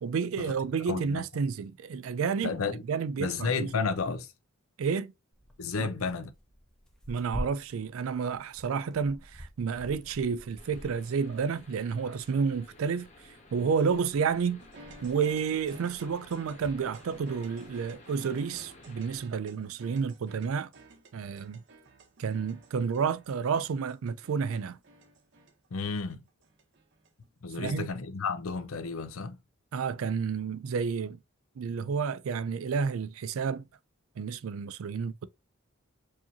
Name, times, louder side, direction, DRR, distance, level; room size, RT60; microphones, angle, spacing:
voice 1, 0.0-2.6 2.9-3.7 4.8-5.1 5.8-5.9 7.1-13.1 13.5-14.6 15.0-20.7 21.1-21.6 22.2-24.8 27.6-27.9 29.7-31.2 31.6-33.7 34.2-35.3, right 6 dB, 75° right, 0.4 m, -30 dB
voice 2, 0.9-1.2 2.4-2.8 3.2-4.3 5.6-6.3 25.7-26.2 27.4-29.4, left 4 dB, 80° left, 0.6 m, -32 dB
Tearing, 5.3-17.9, equal, 5° left, 0.7 m, -48 dB
sound 1, 10.6-19.2, left 2 dB, 35° left, 1.1 m, -54 dB
sound 2, 14.6-27.3, right 2 dB, 55° right, 0.9 m, -54 dB
4.6 x 2.9 x 2.7 m
head